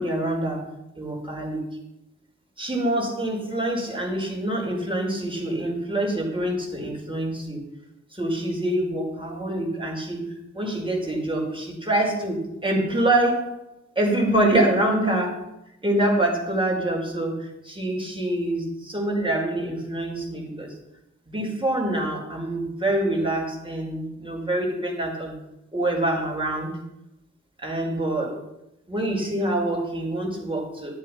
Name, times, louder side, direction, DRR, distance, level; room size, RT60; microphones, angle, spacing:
voice 1, 0.0-1.8 2.6-7.6 8.1-13.6 13.9-15.5 15.8-20.8 21.3-25.4 25.7-26.8 27.6-28.4 28.9-31.0, right 1 dB, 15° right, -1 dB, 5.1 m, -26 dB
13.0 x 11.5 x 5.8 m, 0.87 s
wide cardioid pair, 60°, 29 cm